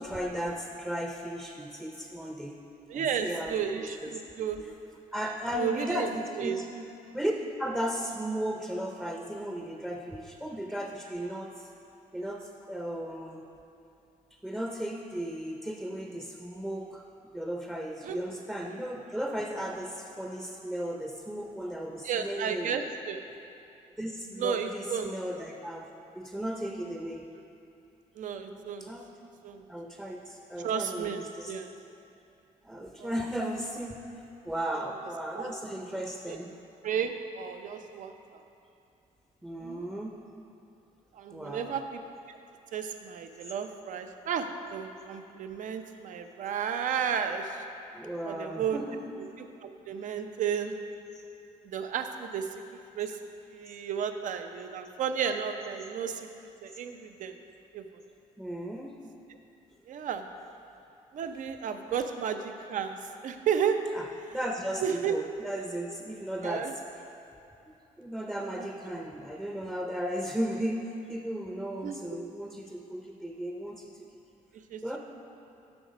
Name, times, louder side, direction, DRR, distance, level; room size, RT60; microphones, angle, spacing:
voice 1, 0.0-2.6 2.9-4.2 4.6-4.7 5.1-6.7 7.1-7.3 7.6-11.7 12.1-13.4 14.4-17.0 17.3-22.8 24.0-25.9 26.1-27.3 28.5-29.1 29.7-31.6 32.6-36.5 39.4-40.2 41.3-41.8 47.9-49.2 58.4-59.0 63.8-64.1 64.3-66.8 68.0-73.9 74.8-75.0, equal, 5° right, 1 dB, 0.6 m, -35 dB
voice 2, 2.9-4.6 5.5-6.1 6.4-6.6 18.0-18.2 22.0-23.2 24.4-25.1 28.2-28.9 29.4-29.6 30.6-31.7 33.0-33.1 35.3-35.5 36.3-36.4 36.8-38.4 39.6-39.9 41.1-42.0 42.3-42.4 42.7-47.6 48.2-48.8 49.4-50.7 51.6-52.5 52.9-53.2 53.5-56.3 56.6-57.3 57.7-57.9 59.9-60.3 61.1-63.8 64.8-65.2 66.4-66.7 68.6-68.7 71.8-72.0 74.7-75.0, right 7 dB, 65° right, 7 dB, 0.6 m, -33 dB
8.0 x 6.0 x 5.1 m, 2.7 s
cardioid pair, 90°, 14 cm